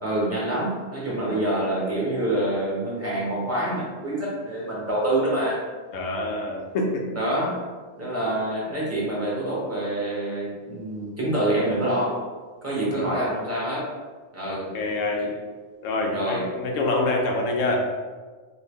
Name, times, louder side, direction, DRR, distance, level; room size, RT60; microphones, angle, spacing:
voice 1, 0.0-5.6 7.1-7.6 8.0-12.2 12.6-13.9 14.3-14.7 16.1-16.4, right 1 dB, 15° right, -6 dB, 0.7 m, -26 dB
voice 2, 5.9-7.0 12.9-13.2 14.5-15.3 15.8-17.8, left 2 dB, 90° left, 1 dB, 1.0 m, -26 dB
3.7 x 2.1 x 3.4 m, 1.4 s
omnidirectional pair, 1.3 m